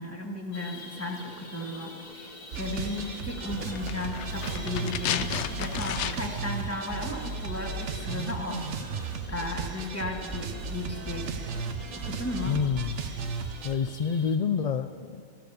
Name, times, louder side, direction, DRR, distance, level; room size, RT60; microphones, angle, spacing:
voice 1, 0.0-5.3 5.6-8.6 9.0-11.3 12.0-12.6, left 1 dB, 10° left, 1 dB, 1.9 m, -35 dB
sound 1, 0.5-14.4, left 2 dB, 40° left, 1.5 m, -45 dB
sound 2, 2.5-13.7, right 4 dB, 75° right, 1.2 m, -35 dB
sound 3, 3.6-6.5 6.7-6.8, left 10 dB, 75° left, 0.9 m, -33 dB
voice 2, 12.5-13.0 13.6-15.2, left 6 dB, 55° left, 9 dB, 0.4 m, -28 dB
15.5 x 13.5 x 6.8 m, 2.2 s
omnidirectional pair, 1.2 m